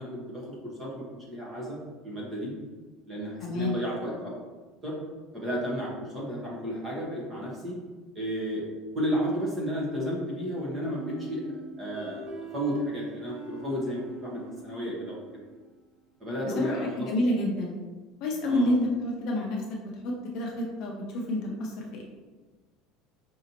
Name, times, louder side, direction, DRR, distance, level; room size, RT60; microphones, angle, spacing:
voice 1, 0.0-1.8 2.0-2.5 3.1-4.3 4.8-5.0 5.3-7.8 8.1-8.6 8.9-11.4 11.8-12.2 12.5-15.2 16.2-17.1 18.5-18.8, equal, 15° right, -5 dB, 0.9 m, -32 dB
voice 2, 3.4-3.7 16.5-17.8 18.2-19.8 20.0-22.0, left 1 dB, 45° left, -1 dB, 0.6 m, -29 dB
sound 1, 10.9-15.6, right 3 dB, 65° right, 1.4 m, -44 dB
5.0 x 2.7 x 2.8 m, 1.3 s
cardioid pair, 175°, 0 cm